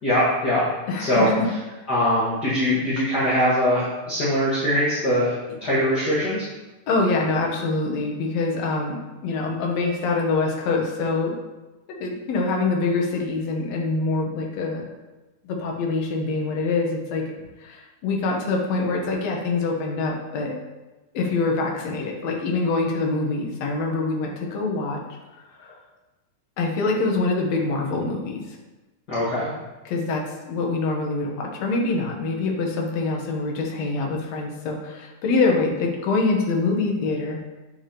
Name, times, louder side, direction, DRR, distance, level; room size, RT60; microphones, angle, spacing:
voice 1, 0.0-0.6 1.0-1.3 1.9-5.3 5.6-6.5 29.1-29.5, equal, 40° left, -9 dB, 1.9 m, -22 dB
voice 2, 0.9-1.5 6.9-11.4 12.0-14.8 15.4-17.2 17.6-20.6 21.1-25.0 25.6-25.8 26.6-28.6 29.9-37.4, left 3 dB, 65° left, 0 dB, 2.1 m, -25 dB
7.8 x 6.8 x 3.0 m, 1.1 s
omnidirectional pair, 3.6 m